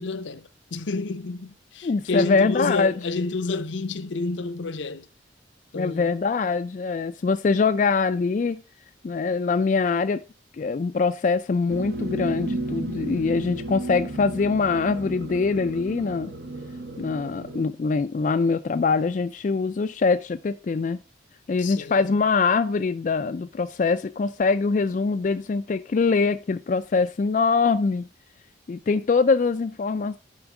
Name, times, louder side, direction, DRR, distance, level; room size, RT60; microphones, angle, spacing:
voice 1, 0.0-5.1 5.7-6.1 21.6-22.1, left 3 dB, 75° left, 0.6 m, -29 dB
voice 2, 1.8-2.9 5.7-8.6 9.0-10.2 10.6-16.3 17.0-21.0 21.5-28.1 28.7-30.2, left 4 dB, 40° left, 0.3 m, -23 dB
sound 1, 11.7-17.7, right 1 dB, 60° right, 1.1 m, -33 dB
10.5 x 4.5 x 4.8 m
head